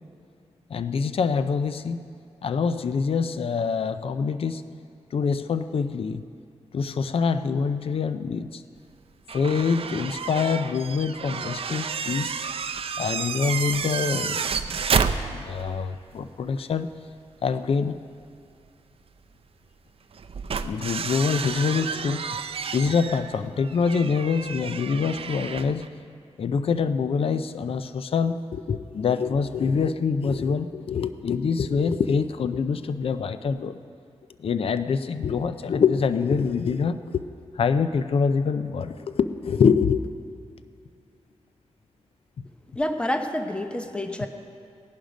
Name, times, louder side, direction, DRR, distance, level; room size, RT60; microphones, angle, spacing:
voice 1, 0.7-2.0 2.4-4.6 5.1-6.2 6.7-8.6 9.3-12.4 13.0-14.5 15.3-16.9 17.4-18.0 20.6-22.3 22.7-25.9 26.4-33.8 34.4-37.2 37.5-40.0 42.4-42.5, left 5 dB, 60° left, 11 dB, 0.5 m, -25 dB
sound 1, 9.3-15.8 16.1-16.2 18.2-18.3 20.1-25.9, right 6 dB, 60° right, 0.5 m, -30 dB
voice 2, 42.8-44.3, left 1 dB, 10° left, 5 dB, 0.8 m, -28 dB
17.0 x 11.5 x 5.2 m, 2.4 s
wide cardioid pair, 155°, 11 cm